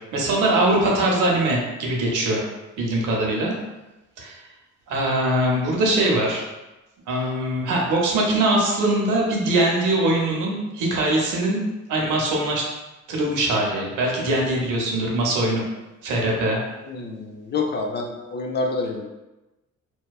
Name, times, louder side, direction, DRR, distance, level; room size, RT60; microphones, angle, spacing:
voice 1, 0.1-2.5 2.8-3.5 4.2-4.4 4.9-6.4 7.1-11.6 11.9-12.6 13.1-15.6 16.0-16.6, right 1 dB, 85° right, -2 dB, 0.7 m, -22 dB
voice 2, 16.9-19.1, left 3 dB, 35° left, 2 dB, 0.4 m, -27 dB
2.7 x 2.2 x 2.2 m, 1.1 s
cardioid pair, 90°, 30 cm